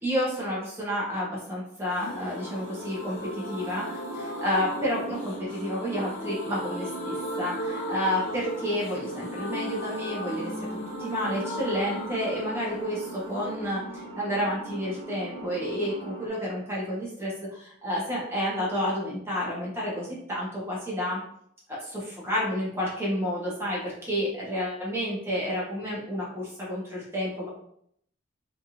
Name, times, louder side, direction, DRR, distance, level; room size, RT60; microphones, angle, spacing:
voice 1, 0.0-10.7 11.0-21.2 21.7-27.5, equal, 15° right, -6 dB, 1.1 m, -30 dB
sound 1, 1.9-15.5 15.8-15.9 16.1-16.2, equal, 80° left, 0.6 m, -37 dB
sound 2, 2.0-16.3, right 2 dB, 75° right, 1.0 m, -41 dB
3.3 x 2.5 x 2.8 m, 0.70 s
head